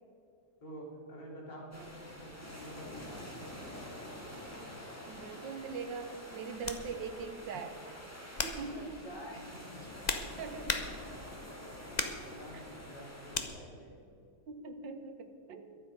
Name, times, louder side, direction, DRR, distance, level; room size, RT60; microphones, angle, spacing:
voice 1, 0.6-3.5 8.6-10.1 11.8-14.0, equal, 60° left, -4 dB, 3.9 m, -49 dB
sound 1, 1.7-13.4, left 1 dB, 10° left, 1.9 m, -47 dB
voice 2, 5.1-7.8 8.4-9.0 10.4-10.8 12.5-12.6 14.5-15.7, right 5 dB, 70° right, 7 dB, 1.8 m, -42 dB
sound 2, 5.5-5.6 6.6-6.9 7.5-7.8 8.3-8.7 9.6-11.3 11.9-12.3 13.3-13.5, left 4 dB, 35° left, 0.6 m, -36 dB
22.5 x 7.7 x 5.3 m, 2.6 s
omnidirectional pair, 2.1 m